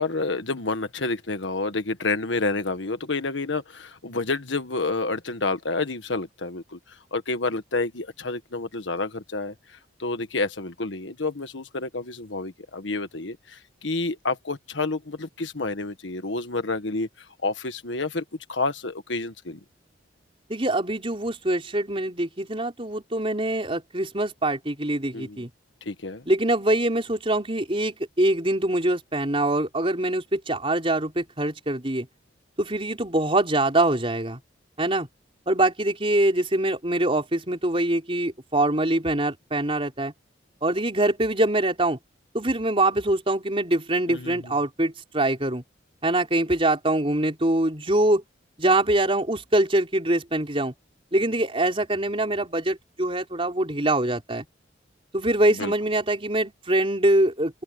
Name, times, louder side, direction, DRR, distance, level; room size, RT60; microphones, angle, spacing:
voice 1, 0.0-18.2 18.5-19.6 25.1-25.4 25.8-26.2 44.1-44.5 55.5-55.7, left 3 dB, 80° left, 1.5 m, -29 dB
voice 2, 20.5-25.5 26.3-32.1 32.6-34.4 34.8-35.1 35.5-40.1 40.6-42.0 42.3-45.6 46.0-48.2 48.6-50.7 51.1-54.4 55.1-57.6, right 1 dB, 30° right, 4.2 m, -24 dB
open air
head